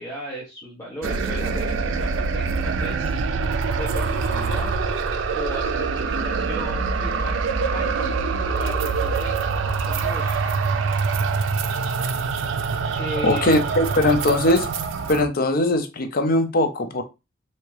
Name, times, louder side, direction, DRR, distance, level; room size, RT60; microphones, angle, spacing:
voice 1, 0.0-3.1 3.5-4.7 5.0-7.4 7.7-9.3 9.8-10.8 12.9-13.6, equal, 15° left, 1.0 m, -36 dB
sound 1, 1.0-15.3, right 4 dB, 85° right, 0.4 m, -24 dB
voice 2, 13.2-14.7 15.1-17.0, left 1 dB, 50° left, 0.6 m, -20 dB
3.5 x 2.8 x 3.2 m
head